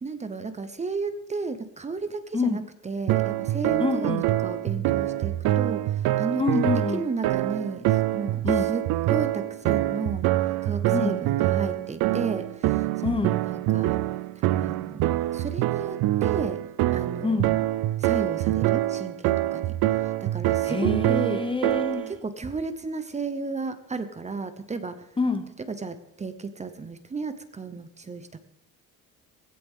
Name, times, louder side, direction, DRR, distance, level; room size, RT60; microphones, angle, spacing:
voice 1, 0.0-4.1 4.4-5.8 6.2-6.5 6.9-8.8 9.1-10.3 10.6-14.0 14.4-16.6 16.9-17.6 18.0-19.7 20.0-21.5 22.1-25.1 25.7-28.4, right 4 dB, 20° right, 10 dB, 0.8 m, -33 dB
sound 1, 3.1-22.1, right 15 dB, 75° right, 0.6 m, -25 dB
voice 2, 3.8-4.3 6.4-7.0 8.4-8.7 10.9-11.2 13.0-13.4 17.2-17.5 20.6-22.1 25.2-25.5, left 4 dB, 15° left, 9 dB, 0.8 m, -26 dB
16.5 x 16.5 x 3.7 m, 0.84 s
cardioid pair, 140°, 36 cm